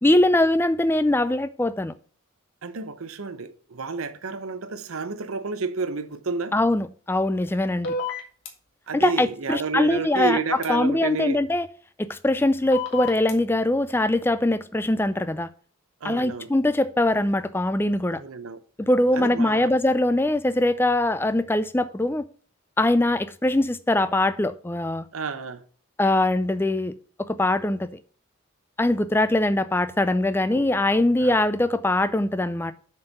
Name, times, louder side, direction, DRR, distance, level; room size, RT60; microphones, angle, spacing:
voice 1, 0.0-1.9 6.5-8.0 8.9-10.4 10.7-11.7 12.0-15.5 16.0-18.2 18.8-22.3 22.8-25.1 26.0-26.9 27.2-27.9 28.8-32.7, left 1 dB, 10° left, 0.3 m, -22 dB
voice 2, 2.6-6.5 8.9-11.4 16.0-16.5 18.1-18.6 19.2-19.7 25.1-25.6 30.5-30.6 31.2-31.4, right 4 dB, 90° right, 0.8 m, -30 dB
sound 1, 7.8-8.5 10.6-10.7 12.7-13.3, left 4 dB, 65° left, 1.7 m, -29 dB
6.8 x 4.5 x 6.5 m
head